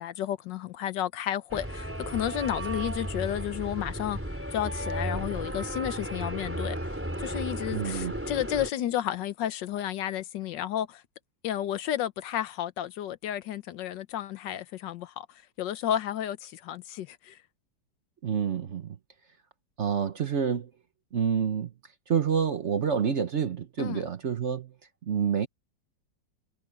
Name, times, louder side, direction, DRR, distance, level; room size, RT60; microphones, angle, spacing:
voice 1, 0.0-4.2 4.5-6.8 7.2-11.0 11.4-15.3 15.6-17.4 23.8-24.0, left 11 dB, 80° left, 1.5 m, -32 dB
sound 1, 1.5-8.7, equal, 5° right, 3.4 m, -34 dB
voice 2, 7.7-8.1 18.2-19.0 19.8-20.7 21.1-21.7 22.1-24.7 25.0-25.5, right 7 dB, 50° right, 1.0 m, -28 dB
omnidirectional pair, 1.9 m